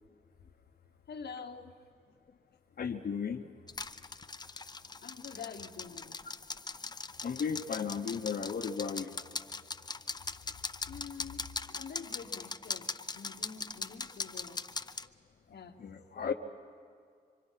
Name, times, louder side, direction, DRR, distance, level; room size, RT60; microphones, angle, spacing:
voice 1, 1.1-1.7 5.0-6.2 10.9-14.6 15.5-15.8 16.1-16.3, left 6 dB, 85° left, 4 dB, 1.3 m, -46 dB
voice 2, 2.8-3.5 7.2-9.1 15.8-16.3, left 6 dB, 65° left, 3 dB, 0.9 m, -35 dB
sound 1, 3.7-15.1, left 4 dB, 25° left, 0.5 m, -41 dB
26.0 x 25.0 x 5.7 m, 2.2 s
cardioid pair, 85°, 17 cm